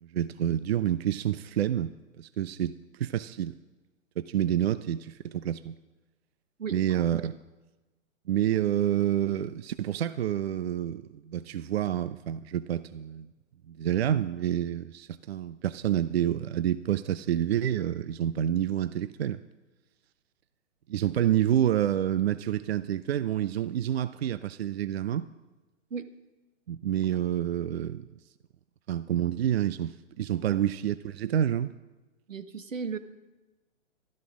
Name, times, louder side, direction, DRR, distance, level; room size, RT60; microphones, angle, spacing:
voice 1, 0.0-3.6 4.2-5.8 6.7-7.4 8.3-13.3 13.7-19.4 20.9-25.3 26.7-28.1 28.9-31.7, right 10 dB, 55° right, 15 dB, 0.5 m, -28 dB
voice 2, 6.6-7.1 25.9-26.1 32.3-33.0, right 5 dB, 80° right, 11 dB, 1.2 m, -36 dB
12.5 x 12.0 x 6.1 m, 1.2 s
figure-of-eight pair, 125°, 39 cm